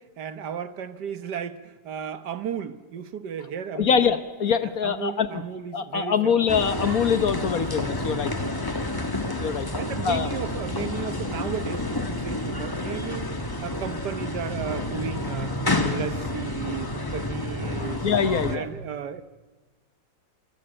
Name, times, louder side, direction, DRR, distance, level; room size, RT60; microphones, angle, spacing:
voice 1, 0.0-4.1 4.6-6.3 8.2-8.7 9.8-13.3 13.6-18.0 18.5-19.2, right 8 dB, 65° right, 12 dB, 1.6 m, -34 dB
voice 2, 3.7-5.4 5.7-8.3 9.4-9.7 10.0-10.3 18.0-18.7, left 7 dB, 55° left, 11 dB, 1.4 m, -24 dB
sound 1, 6.5-18.6, left 2 dB, 15° left, 1.4 m, -29 dB
26.5 x 24.0 x 8.9 m, 1.3 s
omnidirectional pair, 2.0 m